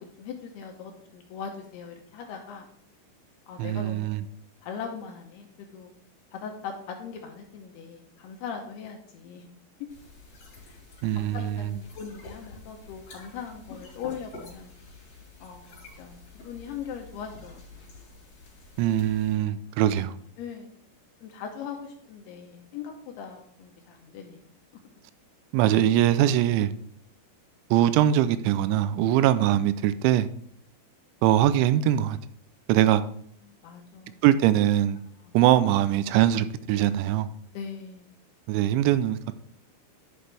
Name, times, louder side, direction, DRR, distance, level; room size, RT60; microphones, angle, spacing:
voice 1, 0.0-2.7 3.5-4.3 4.6-5.9 6.3-9.5 10.7-10.8 11.2-14.7 15.4-17.8 20.4-20.7 21.2-24.5 24.8-24.9 32.9-33.0 33.5-34.2 35.3-35.4 37.5-38.1, left 7 dB, 75° left, 2.5 m, -40 dB
voice 2, 3.6-4.2 11.0-11.6 18.8-20.2 25.5-26.7 27.7-30.3 31.2-32.2 32.7-33.0 34.2-35.0 35.3-37.3 38.5-39.3, right 12 dB, 85° right, 2.8 m, -22 dB
sound 1, 9.9-19.4, left 3 dB, 40° left, 3.5 m, -48 dB
11.0 x 6.1 x 3.3 m
omnidirectional pair, 5.3 m